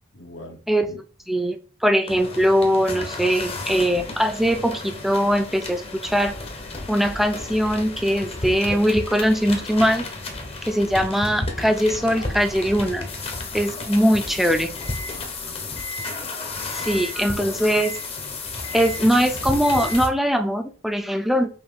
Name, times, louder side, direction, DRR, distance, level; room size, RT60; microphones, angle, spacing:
voice 1, 0.1-1.0 14.3-14.8 15.2-15.8 16.8-17.0 17.4-17.6 18.5-18.8, left 1 dB, 80° left, 2 dB, 1.3 m, -43 dB
voice 2, 1.3-6.3 6.9-10.1 10.6-13.1 13.5-14.7 16.7-17.9 18.7-21.5, equal, ahead, 7 dB, 0.4 m, -21 dB
sound 1, 2.1-20.1, left 3 dB, 30° left, 0.8 m, -32 dB
5.5 x 2.7 x 3.4 m, 0.38 s
head